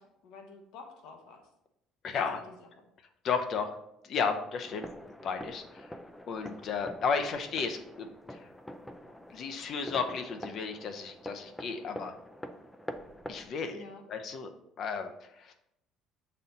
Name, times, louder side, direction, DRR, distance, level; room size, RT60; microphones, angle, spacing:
voice 1, 0.0-1.4 2.1-2.7 13.7-14.0, left 4 dB, 75° left, 3 dB, 1.1 m, -50 dB
voice 2, 2.0-2.4 3.2-3.7 4.0-4.9 5.2-5.9 6.3-8.5 9.3-12.1 13.3-14.5 14.8-15.5, left 5 dB, 50° left, 6 dB, 0.7 m, -33 dB
sound 1, 4.6-13.5, left 1 dB, 5° left, 0.4 m, -45 dB
7.0 x 4.2 x 3.9 m, 0.80 s
cardioid pair, 140°, 0 cm